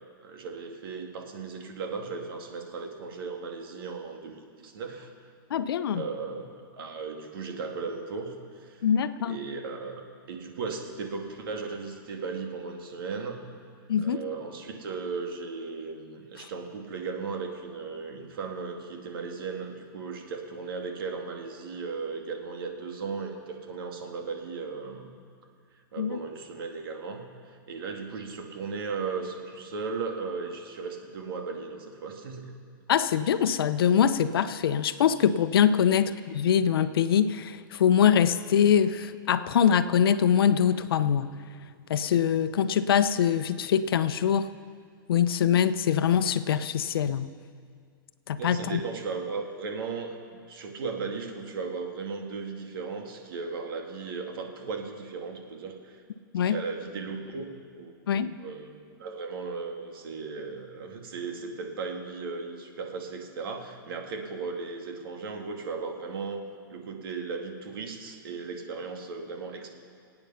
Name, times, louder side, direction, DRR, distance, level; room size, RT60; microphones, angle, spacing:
voice 1, 0.0-5.1 5.9-6.5 6.7-8.8 9.2-9.9 10.3-13.4 14.0-25.1 25.9-32.5 35.7-35.8 48.4-50.2 50.5-56.0 56.4-57.9 58.4-66.4 66.7-69.7, right 4 dB, 75° right, 3 dB, 2.3 m, -36 dB
voice 2, 5.5-6.0 8.8-9.4 13.9-14.2 16.4-16.5 26.0-26.2 32.9-41.3 41.9-44.5 45.1-47.3 48.3-48.8 56.3-56.6 58.1-58.4, left 8 dB, 85° left, 12 dB, 0.7 m, -23 dB
25.0 x 8.9 x 5.8 m, 2.1 s
hypercardioid pair, 145°, 12 cm